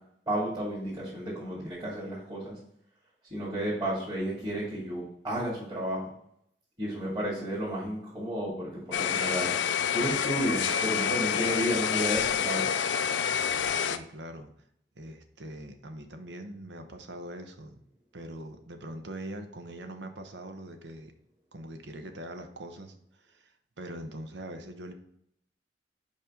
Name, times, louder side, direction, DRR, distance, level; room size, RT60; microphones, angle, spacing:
voice 1, 0.3-2.5 3.3-6.1 6.8-9.5 9.9-12.7, equal, 30° right, -8 dB, 2.2 m, -32 dB
sound 1, 8.9-14.0, left 8 dB, 85° left, 0.4 m, -28 dB
voice 2, 13.9-14.5 15.0-17.8 18.1-21.1 21.5-22.9 23.2-24.9, right 1 dB, 90° right, 6 dB, 0.9 m, -42 dB
5.4 x 5.2 x 3.7 m, 0.70 s
head